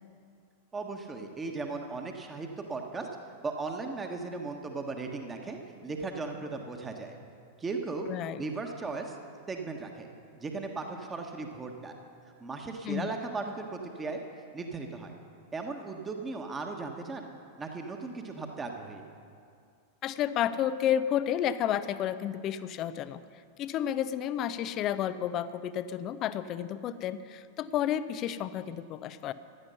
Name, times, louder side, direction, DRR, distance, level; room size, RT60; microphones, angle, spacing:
voice 1, 0.7-3.1 3.4-7.2 7.6-8.1 8.4-9.2 9.5-10.1 10.4-12.0 12.4-14.2 14.5-15.2 15.5-17.3 17.6-19.0, right 3 dB, 15° right, 3 dB, 1.4 m, -37 dB
voice 2, 8.1-8.4 12.8-13.1 20.0-23.2 23.6-29.3, left 10 dB, 35° left, 14 dB, 0.6 m, -31 dB
15.5 x 11.0 x 5.7 m, 2.3 s
figure-of-eight pair, 90°, 0 cm